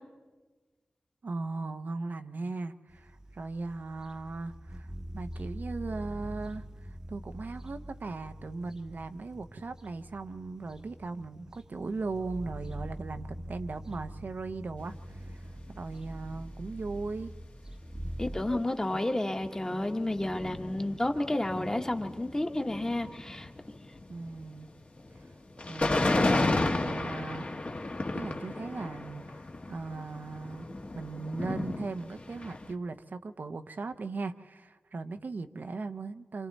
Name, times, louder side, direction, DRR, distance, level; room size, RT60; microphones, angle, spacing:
voice 1, 1.2-17.3 24.1-24.7 25.2-25.3 25.7-27.5 28.1-30.7 30.9-36.5, right 3 dB, 65° right, 8 dB, 0.7 m, -38 dB
sound 1, 2.9-18.6, equal, 15° right, 1.0 m, -44 dB
sound 2, 14.8-15.0 15.7-15.8 16.2-16.3 16.6-16.7 19.2-32.7, left 2 dB, 40° left, 1.3 m, -33 dB
voice 2, 18.2-23.5, left 1 dB, 20° left, 4 dB, 1.3 m, -31 dB
27.0 x 26.0 x 4.1 m, 1.3 s
wide cardioid pair, 110°, 3 cm